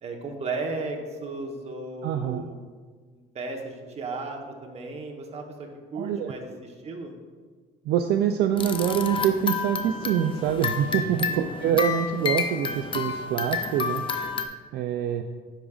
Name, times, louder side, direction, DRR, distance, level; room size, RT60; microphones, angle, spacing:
voice 1, 0.0-2.6 3.1-7.1 11.1-11.4, right 3 dB, 40° right, 2 dB, 1.1 m, -35 dB
voice 2, 2.0-2.4 5.9-6.3 7.9-14.0 14.7-15.2, right 9 dB, 70° right, 5 dB, 0.4 m, -25 dB
sound 1, 8.6-14.5, left 5 dB, 30° left, 0.5 m, -30 dB
10.0 x 5.0 x 2.4 m, 1.5 s
cardioid pair, 110°, 17 cm